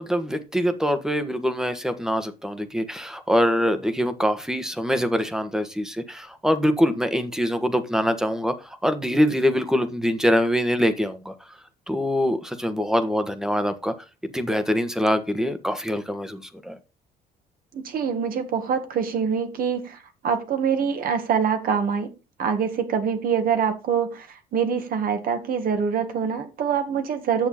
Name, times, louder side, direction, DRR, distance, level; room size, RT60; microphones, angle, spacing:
voice 1, 0.0-11.6 11.9-13.9 14.3-16.8, equal, 5° right, 1.2 m, -24 dB
voice 2, 17.7-20.0 20.2-22.1 22.4-27.5, right 7 dB, 60° right, 1.8 m, -25 dB
8.8 x 6.7 x 4.2 m
cardioid pair, 110°, 17 cm